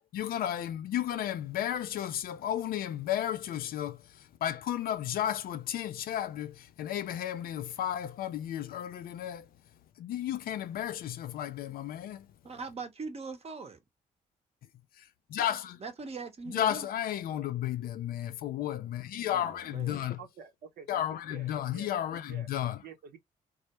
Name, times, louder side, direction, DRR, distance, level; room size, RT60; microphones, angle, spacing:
voice 1, 0.1-9.5 10.0-12.3 15.0-15.1 15.3-15.8 16.5-20.2 20.9-22.8, left 11 dB, 65° left, 0.4 m, -33 dB
voice 2, 12.4-13.8 15.8-16.9 19.3-20.0, right 4 dB, 40° right, 0.8 m, -41 dB
voice 3, 20.2-22.0 22.2-22.5 22.8-23.2, right 6 dB, 70° right, 0.7 m, -49 dB
2.1 x 2.1 x 2.8 m
supercardioid pair, 50°, 17 cm